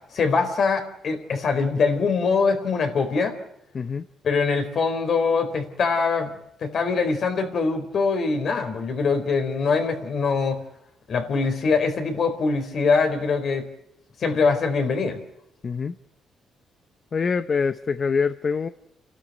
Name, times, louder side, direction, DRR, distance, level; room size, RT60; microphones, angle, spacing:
voice 1, 0.1-3.3 4.2-6.3 6.6-10.6 11.1-13.6 14.2-15.2, left 4 dB, 55° left, 6 dB, 4.2 m, -23 dB
voice 2, 3.7-4.1 15.6-16.0 17.1-18.7, left 5 dB, 40° left, 11 dB, 0.8 m, -25 dB
30.0 x 13.0 x 9.2 m, 0.77 s
cardioid pair, 90°, 0 cm